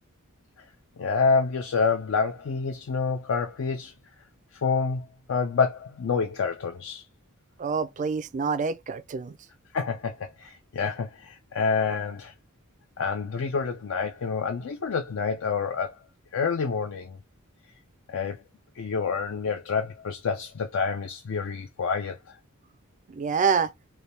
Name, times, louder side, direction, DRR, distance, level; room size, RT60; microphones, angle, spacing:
voice 1, 1.0-3.9 4.5-7.0 9.7-12.3 13.0-16.0 16.3-17.2 18.1-18.4 18.7-22.4, left 5 dB, 65° left, 0.4 m, -28 dB
voice 2, 7.6-9.3 23.1-23.7, right 5 dB, 35° right, 0.3 m, -26 dB
3.4 x 2.2 x 4.1 m
head